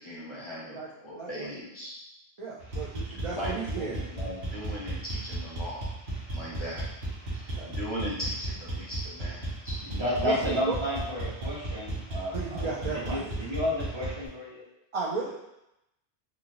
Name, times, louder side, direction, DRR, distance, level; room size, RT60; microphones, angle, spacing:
voice 1, 0.0-1.9 3.3-5.8 6.3-6.8 7.3-9.8 10.2-10.6, equal, 35° left, -7 dB, 0.7 m, -38 dB
voice 2, 1.2-1.5 2.4-4.0 7.5-7.7 10.2-10.3 10.6-10.8 12.3-13.3 14.9-15.3, right 4 dB, 55° right, -5 dB, 0.4 m, -34 dB
sound 1, 2.6-14.3, right 2 dB, 70° right, 1.1 m, -35 dB
voice 3, 9.8-14.6, left 1 dB, 30° right, -8 dB, 0.8 m, -32 dB
2.8 x 2.4 x 2.9 m, 0.87 s
omnidirectional pair, 1.0 m